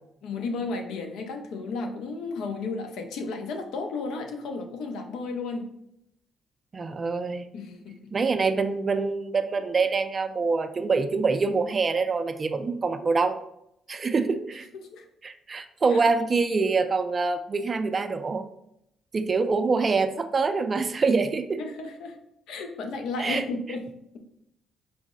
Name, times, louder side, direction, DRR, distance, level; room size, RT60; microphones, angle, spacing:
voice 1, 0.2-5.7 7.5-8.1 14.9-15.0 15.9-16.0 21.6-22.1 22.5-23.9, left 3 dB, 85° left, 4 dB, 0.6 m, -33 dB
voice 2, 6.7-7.5 8.1-13.4 13.9-14.7 15.2-18.4 19.1-21.6 23.2-23.4, right 4 dB, 35° right, 9 dB, 0.4 m, -25 dB
4.7 x 2.0 x 3.6 m, 0.78 s
cardioid pair, 90°, 0 cm